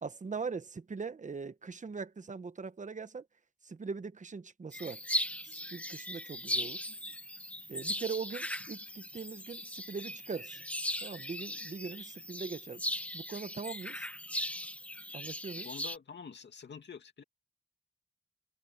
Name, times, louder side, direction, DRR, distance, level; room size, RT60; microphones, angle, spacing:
voice 1, 0.0-3.2 3.6-5.0 5.4-6.8 7.7-10.6 11.0-12.8 13.1-14.1 15.1-15.7, right 5 dB, 45° right, 1.1 m, -41 dB
sound 1, 4.7-16.0, left 1 dB, 10° left, 1.5 m, -38 dB
voice 2, 15.6-17.2, left 6 dB, 80° left, 2.3 m, -47 dB
wide cardioid pair, 100°, 18 cm